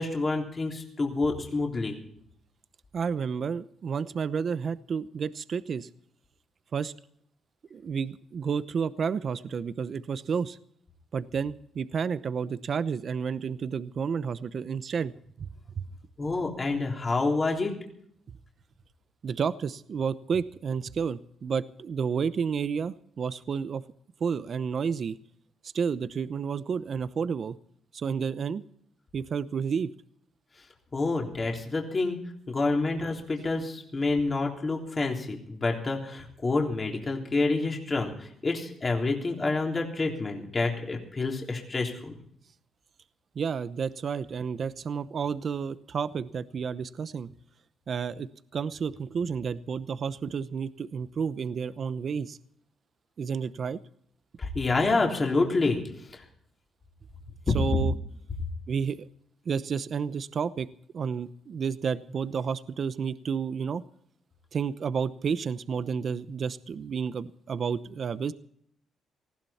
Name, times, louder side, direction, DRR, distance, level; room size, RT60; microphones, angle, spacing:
voice 1, 0.0-2.0 16.2-17.7 30.9-32.2 32.5-42.2 54.4-55.8 56.1-56.2, left 3 dB, 30° left, 1 dB, 3.5 m, -28 dB
voice 2, 2.9-5.9 6.7-6.9 7.7-10.6 11.1-15.1 15.4-15.5 15.8-15.9 19.2-23.8 24.2-25.2 25.7-27.6 27.9-28.6 29.1-29.9 43.3-47.3 47.9-52.4 53.2-53.8 57.5-57.9 58.7-59.1 59.5-60.7 60.9-63.8 64.5-68.3, right 6 dB, 50° right, 14 dB, 0.8 m, -31 dB
19.0 x 15.5 x 4.3 m, 0.66 s
cardioid pair, 90°, 0 cm